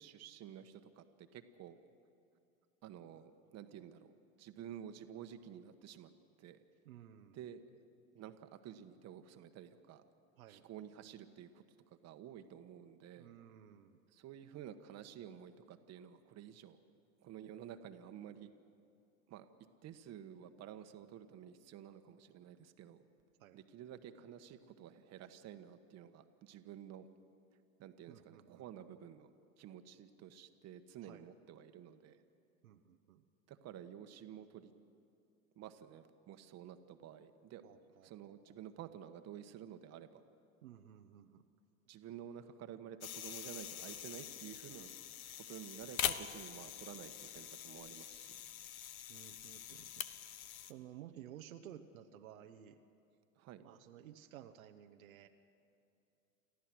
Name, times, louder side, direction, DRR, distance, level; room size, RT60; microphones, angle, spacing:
voice 1, 0.0-1.8 2.8-4.1 4.4-6.1 6.4-6.6 7.3-7.6 8.1-10.0 10.5-11.6 12.0-13.3 14.1-16.8 17.2-18.5 19.3-19.5 19.8-23.0 23.5-27.1 27.8-29.3 29.6-32.2 33.5-34.7 35.6-37.6 38.0-40.2 41.9-44.9 45.5-48.4 53.4-53.6, right 10 dB, 40° right, 9 dB, 1.3 m, -51 dB
voice 2, 6.8-7.5 10.4-10.7 13.2-14.0 23.4-23.6 28.1-28.7 31.0-31.3 32.6-33.2 37.6-38.6 40.6-41.4 49.1-50.1 50.7-52.8 53.6-55.3, right 10 dB, 75° right, 5 dB, 1.1 m, -55 dB
sound 1, 43.0-50.7, left 10 dB, 80° left, 1.0 m, -44 dB
29.5 x 14.5 x 6.2 m, 2.6 s
hypercardioid pair, 90°, 42 cm